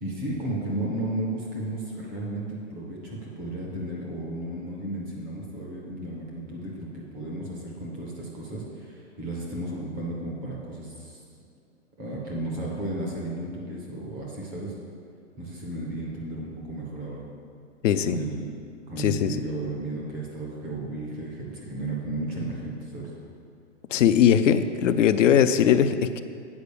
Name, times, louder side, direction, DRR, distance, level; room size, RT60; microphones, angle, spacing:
voice 1, 0.0-11.2 12.0-14.7 15.4-17.2 18.0-18.5 18.9-23.1, right 1 dB, ahead, -3 dB, 0.3 m, -34 dB
voice 2, 17.8-18.2 19.0-19.4 23.9-26.2, left 9 dB, 75° left, 11 dB, 0.6 m, -20 dB
8.7 x 4.8 x 6.8 m, 2.3 s
hypercardioid pair, 160°, 37 cm